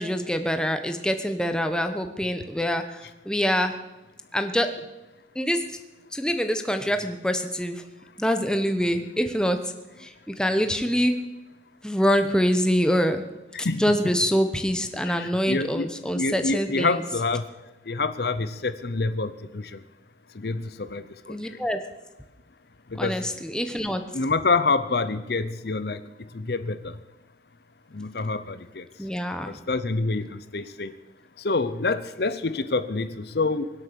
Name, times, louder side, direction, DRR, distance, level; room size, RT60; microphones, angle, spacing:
voice 1, 0.0-3.7 4.3-4.7 5.3-5.8 6.1-7.8 8.2-9.6 10.0-11.2 11.8-13.2 13.6-17.0 21.3-21.8 23.0-24.0 29.0-29.5, equal, 5° left, 7 dB, 1.0 m, -25 dB
voice 2, 13.5-14.0 15.0-15.9 16.1-17.5 17.9-19.8 20.4-21.4 22.9-23.2 24.1-26.0 26.3-26.9 27.9-28.8 29.7-30.9 31.4-33.7, left 3 dB, 55° left, 13 dB, 0.7 m, -27 dB
23.5 x 8.1 x 6.9 m, 1.0 s
head